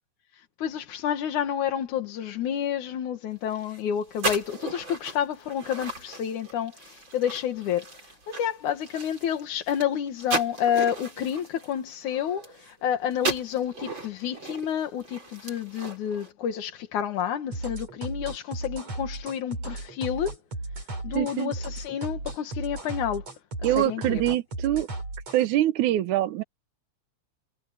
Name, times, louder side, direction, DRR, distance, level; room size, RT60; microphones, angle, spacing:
voice 1, 0.6-20.4 21.0-23.2 23.6-24.2, left 9 dB, 85° left, 3.0 m, -29 dB
sound 1, 3.5-12.8 13.1-16.3, right 3 dB, 40° right, 6.3 m, -36 dB
sound 2, 17.5-25.5, right 2 dB, 60° right, 9.1 m, -35 dB
voice 2, 21.1-21.5 23.6-24.9 25.3-26.4, right 14 dB, 85° right, 2.4 m, -24 dB
omnidirectional pair, 3.4 m